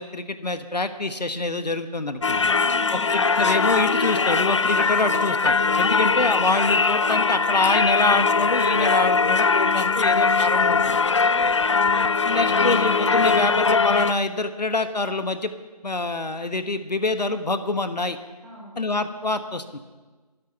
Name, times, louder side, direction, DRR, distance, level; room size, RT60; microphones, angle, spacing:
voice 1, 0.0-2.5 3.1-11.0 12.2-15.5 15.8-18.2 18.8-19.8, left 2 dB, 85° left, 9 dB, 1.4 m, -26 dB
Singing / Church bell, 2.2-14.1, left 4 dB, 45° left, 0.5 m, -21 dB
voice 2, 2.6-3.1 9.9-10.3 11.2-11.6 18.4-18.8, right 2 dB, 5° right, -6 dB, 1.9 m, -44 dB
24.0 x 9.5 x 5.9 m, 1.3 s
figure-of-eight pair, 160°, 21 cm